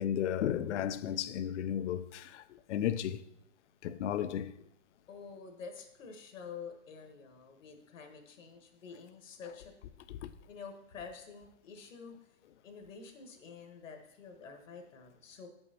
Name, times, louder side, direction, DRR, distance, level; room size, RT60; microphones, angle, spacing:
voice 1, 0.0-3.2 3.8-4.5 10.1-10.3, left 10 dB, 65° left, 0.5 m, -34 dB
voice 2, 5.1-9.7 10.5-12.3 12.6-15.5, left 5 dB, 80° left, 1.3 m, -48 dB
8.0 x 5.5 x 2.7 m
hypercardioid pair, 140°, 38 cm